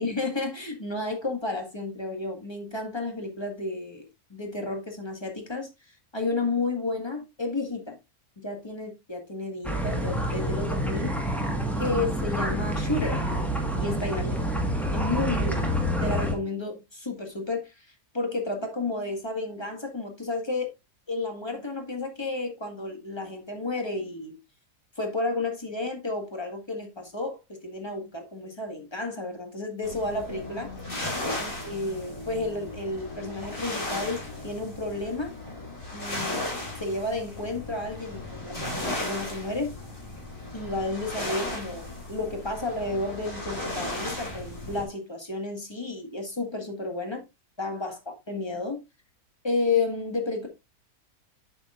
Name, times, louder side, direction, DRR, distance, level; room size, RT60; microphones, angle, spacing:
voice 1, 0.0-5.7 6.1-8.0 8.4-11.2 11.8-13.2 13.7-14.3 14.9-15.7 16.0-17.9 18.1-20.7 21.1-24.4 25.0-30.7 31.4-35.4 35.9-36.5 36.8-39.8 40.5-47.2 47.6-48.8 49.4-50.5, left 2 dB, 15° left, 1.7 m, -32 dB
sound 1, 9.6-16.3, equal, ahead, 1.3 m, -27 dB
sound 2, 29.8-44.8, left 1 dB, 30° left, 3.4 m, -36 dB
8.6 x 7.0 x 2.5 m
omnidirectional pair, 1.7 m